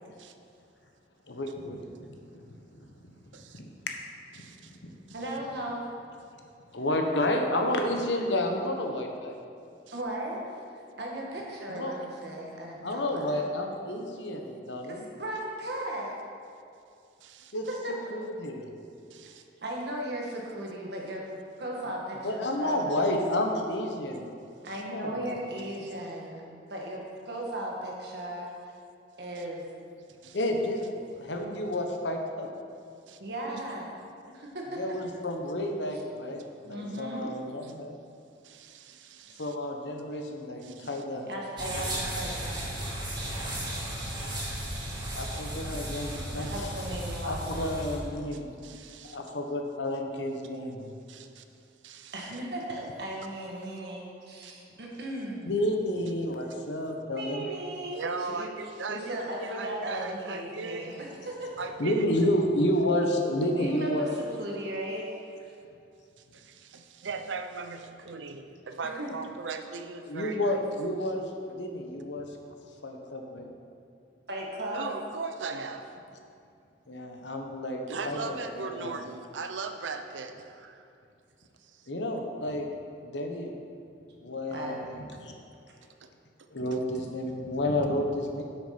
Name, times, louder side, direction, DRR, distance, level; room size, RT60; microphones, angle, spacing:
voice 1, 1.3-2.4 2.7-3.1 3.5-4.0 4.8-4.9 6.7-9.4 11.7-11.9 12.8-15.1 17.5-17.6 18.1-18.7 22.2-24.3 24.8-25.3 30.3-32.5 34.8-38.0 39.4-41.3 45.1-46.7 47.2-48.5 49.1-50.9 55.4-57.5 61.8-64.1 70.1-71.3 71.5-72.3 72.8-73.5 76.9-79.0 81.9-82.7 83.0-83.5 84.2-85.3 86.5-88.4, left 1 dB, 75° left, 3 dB, 1.1 m, -30 dB
voice 2, 4.4-4.7 5.1-5.2 9.9-10.0 17.2-17.5 19.1-19.4 24.6-24.7 29.4-29.5 30.2-30.4 33.1-33.2 37.6-37.7 38.4-39.6 40.6-41.0 43.6-45.4 46.1-46.6 48.3-49.2 51.1-51.4 51.8-52.3 54.4-54.5 57.9-60.9 61.6-62.1 66.3-70.6 74.7-75.9 77.9-80.8 81.6-81.9 86.0-86.1 86.4-86.5, right 4 dB, 85° right, 7 dB, 0.6 m, -39 dB
voice 3, 5.1-5.8 9.9-10.4 11.0-13.5 14.9-16.1 17.7-18.1 19.6-21.2 21.6-23.0 24.6-26.4 26.7-28.5 29.2-29.7 33.2-33.9 34.3-34.8 36.6-37.3 41.2-42.8 46.3-47.7 52.1-55.4 57.1-58.5 58.9-61.6 63.6-65.1 65.4-65.5 69.0-69.1 74.3-74.9 84.5-84.8, right 1 dB, 60° right, -2 dB, 1.7 m, -36 dB
sound 1, 41.6-48.0, right 1 dB, 25° right, 2.1 m, -35 dB
8.0 x 6.3 x 5.9 m, 2.5 s
head